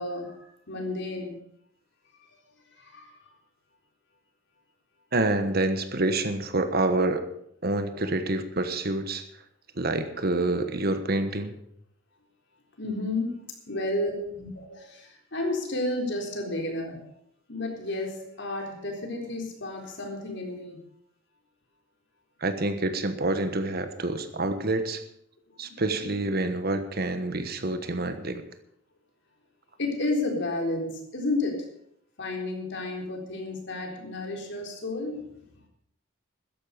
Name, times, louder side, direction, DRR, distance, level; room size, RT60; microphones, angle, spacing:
voice 1, 0.0-1.4 2.3-2.4 2.7-3.3 7.9-8.1 12.8-13.3 13.7-17.0 17.5-20.8 25.5-25.8 26.1-26.2 29.8-31.7 32.2-35.4, left 2 dB, 55° left, 1 dB, 3.9 m, -32 dB
voice 2, 5.1-7.2 7.6-9.2 9.8-11.5 22.4-25.0 25.6-28.4, right 2 dB, 45° right, 9 dB, 1.3 m, -27 dB
13.5 x 11.0 x 6.8 m, 0.71 s
head